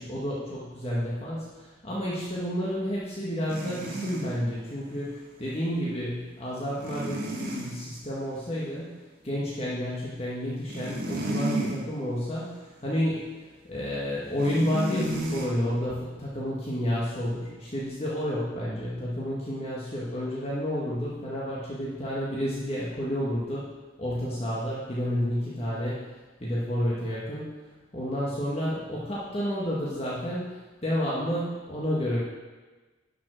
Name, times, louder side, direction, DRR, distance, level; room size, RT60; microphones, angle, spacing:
voice 1, 0.0-1.5 1.8-9.0 9.2-13.3 13.7-23.7 24.0-26.0 26.4-27.5 27.9-30.6 30.8-32.2, equal, 30° left, -7 dB, 1.7 m, -30 dB
sound 1, 3.5-4.3 6.8-7.8 10.5-11.8 12.3-12.5 14.4-15.5, right 1 dB, 50° right, 2.0 m, -32 dB
11.0 x 5.9 x 6.2 m, 1.3 s
head